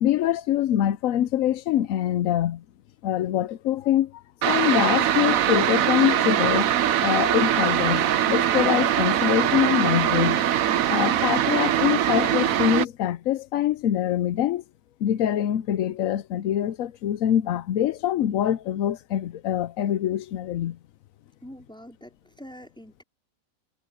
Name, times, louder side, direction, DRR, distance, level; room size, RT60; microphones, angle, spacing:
voice 1, 0.0-2.6 3.0-4.2 4.5-10.4 10.9-14.6 15.0-20.8, left 11 dB, 80° left, 1.0 m, -24 dB
sound 1, 4.4-12.9, right 11 dB, 80° right, 1.2 m, -22 dB
voice 2, 21.4-23.0, equal, 5° left, 4.9 m, -45 dB
omnidirectional pair, 1.4 m